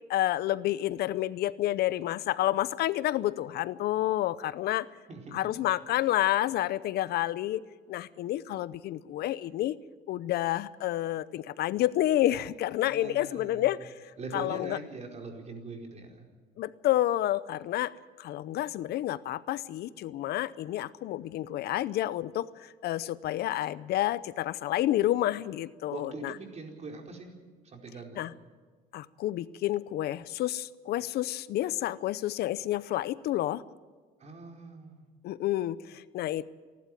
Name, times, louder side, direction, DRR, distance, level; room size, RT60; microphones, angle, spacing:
voice 1, 0.1-4.9 5.3-7.6 7.9-9.8 10.1-13.9 14.3-14.8 16.6-26.3 28.2-28.3 28.9-33.6 35.2-36.4, left 14 dB, 70° left, 18 dB, 0.7 m, -29 dB
voice 2, 5.1-5.5 12.8-13.8 14.2-16.3 25.9-27.3 27.6-28.3 34.2-35.0, right 3 dB, 40° right, 2 dB, 4.6 m, -42 dB
27.5 x 12.0 x 9.2 m, 1.5 s
cardioid pair, 110°, 17 cm